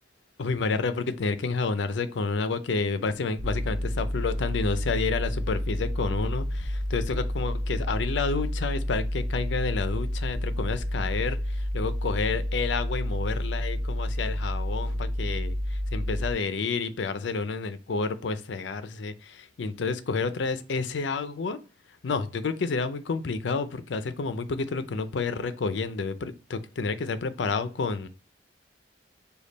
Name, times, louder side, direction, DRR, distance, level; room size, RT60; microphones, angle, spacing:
voice 1, 0.4-15.6 15.9-21.6 22.0-28.1, left 4 dB, 85° left, 0.5 m, -30 dB
sound 1, 3.4-16.3, equal, 85° right, 0.9 m, -30 dB
5.1 x 2.3 x 4.0 m
head